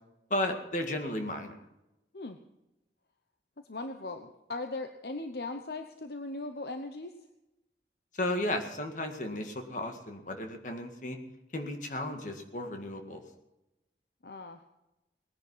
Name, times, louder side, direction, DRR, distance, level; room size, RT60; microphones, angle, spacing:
voice 1, 0.3-1.5 8.1-11.2 11.5-13.2, left 1 dB, 45° left, 5 dB, 1.9 m, -34 dB
voice 2, 3.7-7.1 14.2-14.6, left 2 dB, 65° left, 7 dB, 0.9 m, -39 dB
19.5 x 10.5 x 5.6 m, 0.95 s
head